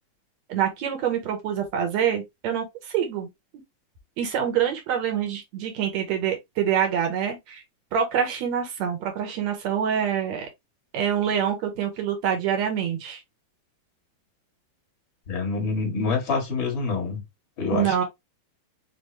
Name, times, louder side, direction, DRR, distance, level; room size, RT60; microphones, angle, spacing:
voice 1, 0.5-3.3 4.2-7.6 7.9-10.5 10.9-13.2 17.7-18.0, right 8 dB, 65° right, 2.0 m, -26 dB
voice 2, 15.3-17.2 17.6-18.0, left 4 dB, 40° left, 2.0 m, -26 dB
5.8 x 2.7 x 3.2 m
omnidirectional pair, 4.2 m